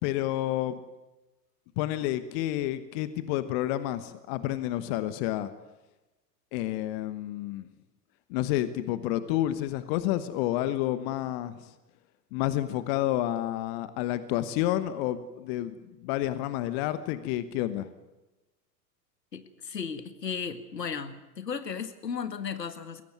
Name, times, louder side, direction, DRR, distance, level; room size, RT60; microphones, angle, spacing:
voice 1, 0.0-0.8 1.8-5.5 6.5-7.7 8.3-11.7 12.3-17.9, left 14 dB, 35° left, 14 dB, 1.2 m, -30 dB
voice 2, 19.3-23.0, left 6 dB, 75° left, 11 dB, 1.9 m, -35 dB
22.0 x 17.0 x 9.5 m, 1.1 s
figure-of-eight pair, 95°, 50 cm